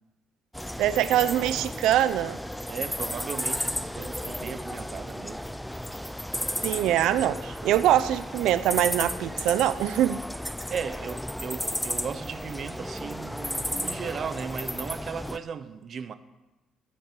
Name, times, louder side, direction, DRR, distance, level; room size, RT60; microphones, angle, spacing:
sound 1, 0.5-15.4, equal, ahead, 0.4 m, -34 dB
voice 1, 0.8-2.4 6.6-10.2, right 12 dB, 85° right, 0.5 m, -23 dB
voice 2, 2.7-5.4 5.7-6.3 9.4-9.6 10.7-16.1, right 6 dB, 40° right, 0.7 m, -37 dB
13.0 x 7.4 x 8.3 m
cardioid pair, 155°, 0 cm